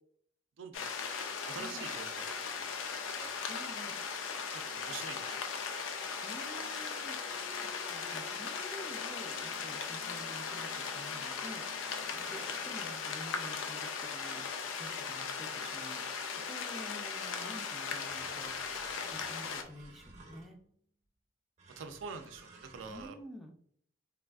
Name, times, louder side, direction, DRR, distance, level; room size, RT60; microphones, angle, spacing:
voice 1, 0.6-1.2 1.4-2.2 2.9-3.4 4.5-5.4 21.8-23.2, right 5 dB, 70° right, 7 dB, 0.4 m, -46 dB
Woodland Rain, 0.7-19.6, left 5 dB, 70° left, 0.4 m, -38 dB
voice 2, 1.5-1.9 3.5-4.0 6.2-14.4 14.8-20.6 22.9-23.5, equal, ahead, 2 dB, 0.4 m, -50 dB
sound 1, 7.2-19.7, left 4 dB, 90° left, 1.1 m, -60 dB
sound 2, 18.1-20.7 21.6-23.1, right 3 dB, 35° right, 0.7 m, -55 dB
3.3 x 2.4 x 2.3 m, 0.63 s
head